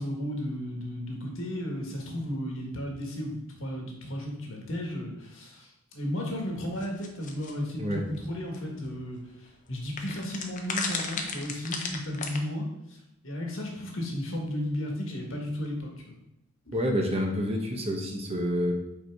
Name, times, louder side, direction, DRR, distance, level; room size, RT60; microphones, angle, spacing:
voice 1, 0.0-13.0 13.2-16.1 16.7-16.8, equal, 65° left, 0 dB, 1.5 m, -34 dB
sound 1, 6.8-7.5 8.5-8.6 8.8-8.9 10.0-12.4, left 5 dB, 35° left, 0.7 m, -33 dB
voice 2, 16.7-18.7, equal, 30° right, 2 dB, 0.8 m, -28 dB
5.5 x 4.4 x 4.6 m, 0.86 s
head